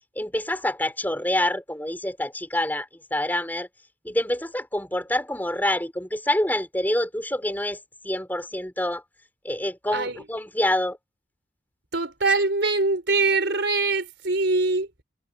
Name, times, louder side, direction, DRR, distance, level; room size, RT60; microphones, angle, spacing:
voice 1, 0.2-3.7 4.0-9.0 9.4-11.0, left 1 dB, 10° left, 6.3 m, -27 dB
voice 2, 11.9-14.9, right 3 dB, 70° right, 4.6 m, -23 dB
head